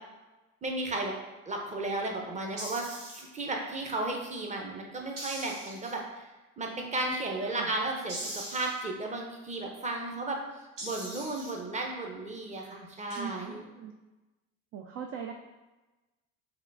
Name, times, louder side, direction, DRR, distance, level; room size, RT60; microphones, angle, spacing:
voice 1, 0.6-1.1 1.5-2.9 3.1-6.2 6.6-10.4 10.8-13.7, right 2 dB, 20° right, 1 dB, 0.8 m, -34 dB
sound 1, 2.6-3.2 5.2-6.0 8.1-8.8 10.8-11.5 13.1-13.2, right 1 dB, 75° right, 1.4 m, -40 dB
voice 2, 13.2-13.9 14.7-15.3, right 7 dB, 40° right, 3 dB, 0.4 m, -40 dB
3.7 x 2.4 x 3.4 m, 1.1 s
hypercardioid pair, 65°, 39 cm